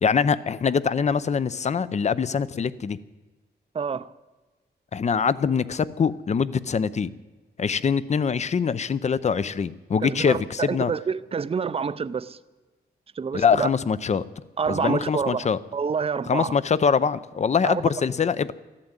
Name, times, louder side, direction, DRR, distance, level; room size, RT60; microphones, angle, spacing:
voice 1, 0.0-3.0 4.9-7.1 7.6-10.9 13.3-14.2 14.7-15.6 16.3-18.5, left 6 dB, 40° left, 17 dB, 0.6 m, -23 dB
voice 2, 3.7-4.1 10.0-12.4 13.2-13.7 14.6-15.5 15.7-16.5 17.6-17.8, right 6 dB, 35° right, 14 dB, 0.5 m, -27 dB
14.0 x 11.5 x 8.9 m, 1.3 s
wide cardioid pair, 120°, 18 cm